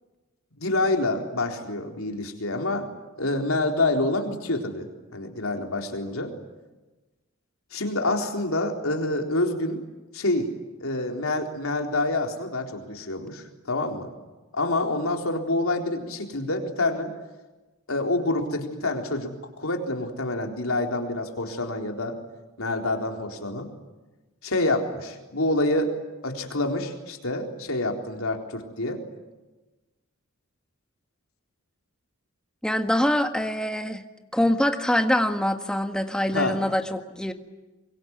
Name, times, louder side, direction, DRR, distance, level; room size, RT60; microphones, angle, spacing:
voice 1, 0.6-2.9 3.2-6.3 7.7-9.9 10.1-10.5 10.8-14.1 14.5-17.1 17.9-22.2 22.6-23.7 24.4-25.9 26.2-29.0 36.3-36.6, left 2 dB, 85° left, 3 dB, 4.0 m, -27 dB
voice 2, 32.6-34.0 34.3-37.3, left 1 dB, 5° left, 6 dB, 1.7 m, -24 dB
25.0 x 23.0 x 9.7 m, 1.1 s
head